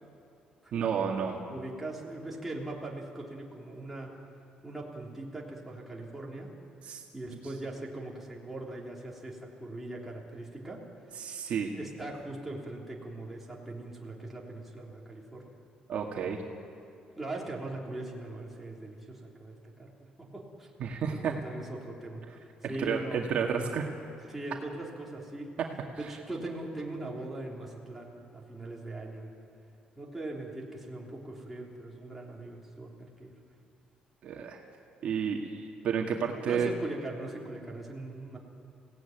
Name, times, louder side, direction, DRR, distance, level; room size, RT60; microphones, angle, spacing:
voice 1, 0.7-1.4 6.8-7.0 11.2-11.7 15.9-16.4 20.8-21.3 22.6-23.8 34.2-34.6 35.0-36.7, right 7 dB, 50° right, 1 dB, 2.1 m, -31 dB
voice 2, 1.5-4.1 4.6-6.5 7.1-10.8 11.7-15.5 17.2-20.7 21.1-23.2 24.3-25.5 26.0-29.4 30.0-33.3 36.3-38.4, right 2 dB, 5° right, -3 dB, 3.5 m, -40 dB
29.5 x 17.5 x 9.3 m, 2.6 s
cardioid pair, 175°, 3 cm